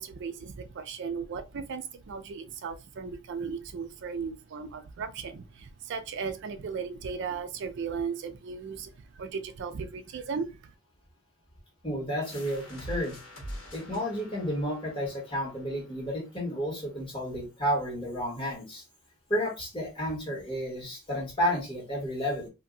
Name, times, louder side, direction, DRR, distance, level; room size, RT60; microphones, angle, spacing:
voice 1, 0.0-10.7, right 5 dB, 60° right, 0.4 m, -36 dB
voice 2, 11.8-13.2 13.7-18.8 19.3-22.5, equal, 25° left, 1.4 m, -31 dB
sound 1, 12.2-17.6, equal, 70° left, 1.2 m, -45 dB
2.6 x 2.1 x 3.7 m
head